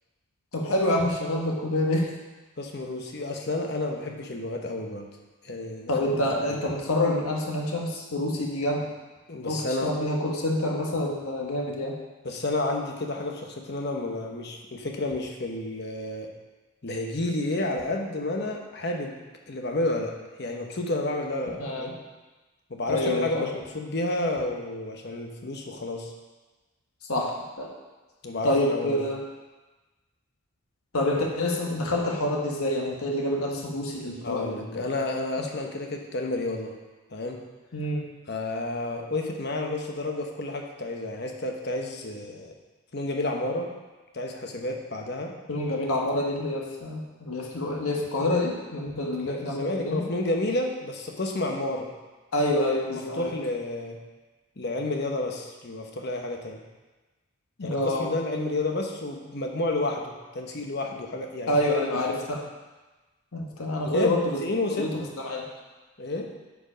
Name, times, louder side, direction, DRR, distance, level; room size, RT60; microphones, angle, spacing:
voice 1, 0.5-2.1 5.9-8.9 9.5-11.9 21.6-21.9 22.9-23.5 27.1-27.7 28.4-29.2 30.9-34.9 37.7-38.0 45.5-50.0 52.3-53.3 57.6-58.1 61.5-62.4 63.3-64.4 64.8-65.4, left 1 dB, 80° left, -1 dB, 1.3 m, -27 dB
voice 2, 2.6-5.1 5.4-6.6 9.3-10.0 12.2-16.3 16.8-19.2 19.5-22.0 22.7-26.1 28.2-29.1 34.2-36.8 37.1-37.4 38.3-42.5 42.9-43.7 44.1-45.3 49.0-51.9 52.5-54.0 54.6-56.6 57.6-61.6 63.8-64.9 66.0-66.3, left 2 dB, 50° left, 2 dB, 1.0 m, -31 dB
9.3 x 4.9 x 5.1 m, 1.2 s
head